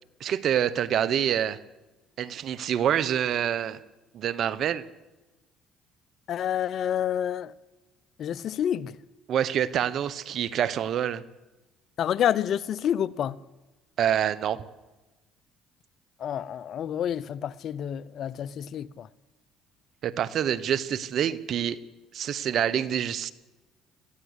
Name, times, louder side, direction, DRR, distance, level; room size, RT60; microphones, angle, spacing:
voice 1, 0.2-1.6 2.2-3.8 4.1-4.8 9.3-11.2 14.0-14.6 20.0-21.8 22.1-23.3, right 9 dB, 60° right, 1.2 m, -26 dB
voice 2, 6.3-7.5 8.2-8.9 12.0-13.4 16.2-19.1, left 10 dB, 60° left, 0.8 m, -28 dB
21.5 x 15.0 x 8.3 m
supercardioid pair, 75°, 0 cm